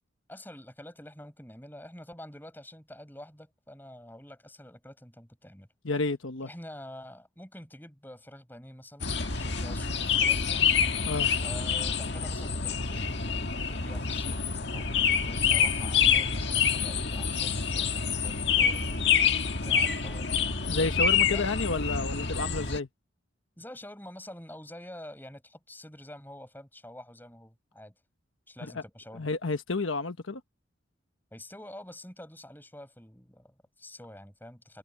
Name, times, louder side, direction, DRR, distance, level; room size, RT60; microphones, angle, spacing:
voice 1, 0.3-5.7 6.4-10.7 11.4-14.4 14.7-19.2 19.6-20.8 21.3-21.6 23.6-27.9 28.5-29.3 31.3-34.8, left 1 dB, 10° left, 7.4 m, -47 dB
voice 2, 5.8-6.5 11.1-11.3 20.7-22.9 29.1-30.4, left 3 dB, 75° left, 1.2 m, -30 dB
sound 1, 9.0-22.8, left 6 dB, 55° left, 1.8 m, -27 dB
head